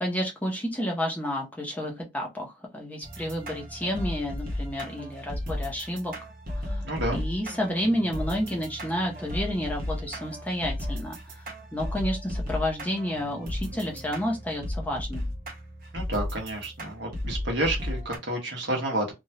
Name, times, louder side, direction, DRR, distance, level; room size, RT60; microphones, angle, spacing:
voice 1, 0.0-6.1 6.7-6.8 7.1-11.4 11.7-15.3, equal, 10° left, 0.7 m, -30 dB
sound 1, 3.0-18.2, left 1 dB, 45° right, 1.0 m, -35 dB
voice 2, 6.8-7.2 15.9-19.1, right 1 dB, 70° right, 1.2 m, -30 dB
3.0 x 2.3 x 2.7 m
head